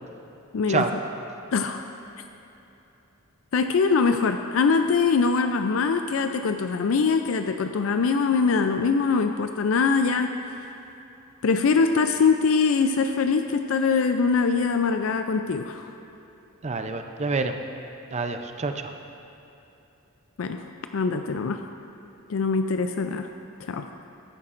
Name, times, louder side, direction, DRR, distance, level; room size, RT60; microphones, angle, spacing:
voice 1, 0.5-0.8 1.5-1.9 3.5-10.3 10.5-10.6 11.4-15.9 20.4-20.6 20.9-21.6 22.3-23.3 23.7-23.9, left 5 dB, 70° left, 7 dB, 0.4 m, -23 dB
voice 2, 16.6-17.6 18.1-18.9, right 3 dB, 35° right, 6 dB, 0.5 m, -27 dB
14.0 x 11.0 x 2.5 m, 2.9 s
head